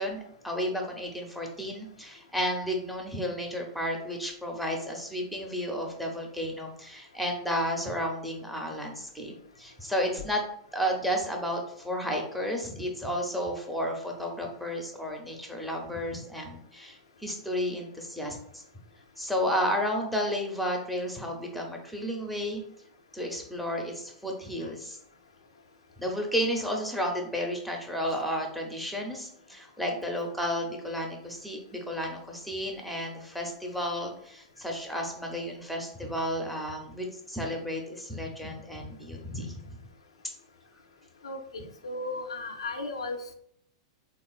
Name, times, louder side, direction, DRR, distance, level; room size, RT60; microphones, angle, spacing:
voice 1, 0.0-10.4 10.7-18.6 19.2-22.6 23.1-25.0 26.0-39.6, equal, ahead, 1 dB, 0.6 m, -32 dB
voice 2, 41.2-43.3, left 2 dB, 90° left, 4 dB, 0.4 m, -36 dB
3.5 x 2.4 x 2.3 m, 0.69 s
hypercardioid pair, 115°, 3 cm